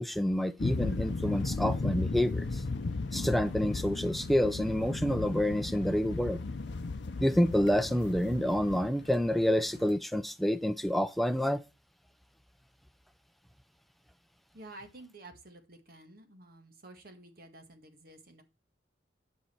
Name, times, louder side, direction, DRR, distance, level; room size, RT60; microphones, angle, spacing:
voice 1, 0.0-2.6 3.1-6.4 7.2-11.6, equal, ahead, 0.5 m, -28 dB
sound 1, 0.6-10.0, left 3 dB, 65° left, 0.6 m, -35 dB
voice 2, 14.5-18.4, right 2 dB, 55° right, 1.7 m, -51 dB
10.5 x 5.6 x 4.5 m
head